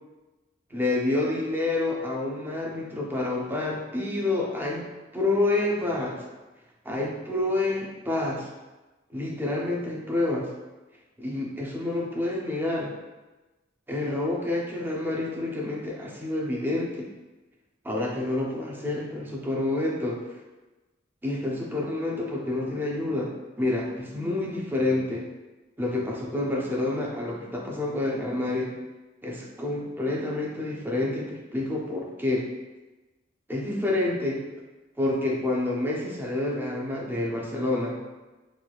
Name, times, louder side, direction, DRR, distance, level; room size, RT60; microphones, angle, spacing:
voice 1, 0.7-4.9 5.1-6.2 6.8-8.5 9.1-10.5 11.2-12.9 13.9-17.1 17.8-20.2 21.2-23.3 23.6-25.2 25.8-28.8 29.2-32.5 33.5-34.5 35.0-38.0, left 2 dB, 10° right, -2 dB, 0.4 m, -28 dB
3.1 x 2.4 x 2.2 m, 1.1 s
head